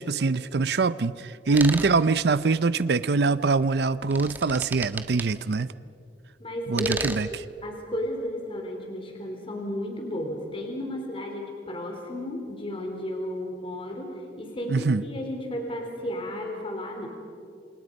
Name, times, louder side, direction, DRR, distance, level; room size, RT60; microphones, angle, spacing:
voice 1, 0.0-5.7 6.7-7.3 14.7-15.0, right 4 dB, 65° right, 16 dB, 0.5 m, -23 dB
voice 2, 1.5-2.0 5.5-5.7 6.4-7.0 7.6-14.1 14.4-17.1, left 1 dB, 30° left, 2 dB, 3.7 m, -33 dB
sound 1, 1.5-2.0 3.9-5.3 6.8-7.4, right 2 dB, 10° right, 1.4 m, -33 dB
28.5 x 27.5 x 5.3 m, 2.5 s
head